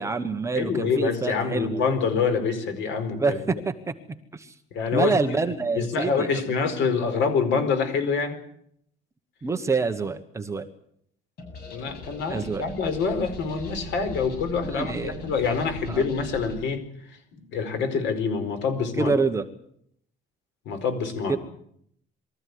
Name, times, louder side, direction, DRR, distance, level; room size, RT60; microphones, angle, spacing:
voice 1, 0.0-1.7 3.2-4.5 4.9-6.4 9.4-10.7 12.3-12.7 14.6-15.2 15.9-16.0 19.0-19.5 21.3-21.4, right 4 dB, 15° right, 7 dB, 1.1 m, -26 dB
voice 2, 0.5-3.6 4.7-5.4 5.7-8.4 11.7-16.8 17.1-19.1 20.7-21.4, left 5 dB, 70° left, 8 dB, 4.6 m, -26 dB
sound 1, 11.4-16.6, equal, 55° left, 7.4 m, -40 dB
23.0 x 14.0 x 9.5 m, 0.70 s
cardioid pair, 165°, 20 cm